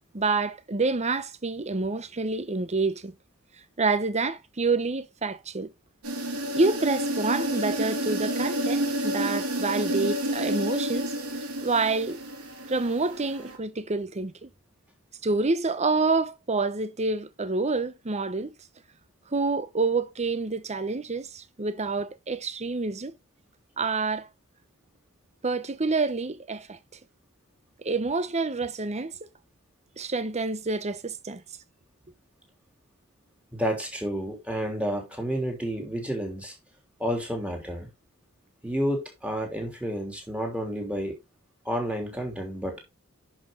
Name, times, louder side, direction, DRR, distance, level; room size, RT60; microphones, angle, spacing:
voice 1, 0.1-3.1 3.8-5.7 6.5-11.1 11.6-12.2 12.7-14.5 15.2-18.5 19.3-23.1 23.8-24.3 25.4-26.8 27.8-29.3 30.0-31.4, right 3 dB, 30° right, 0.9 m, -27 dB
sound 1, 6.0-13.6, right 1 dB, 90° right, 2.8 m, -30 dB
voice 2, 33.5-36.5 37.0-37.9 38.6-41.1 41.6-42.8, equal, 5° right, 3.3 m, -30 dB
10.5 x 5.7 x 3.8 m
head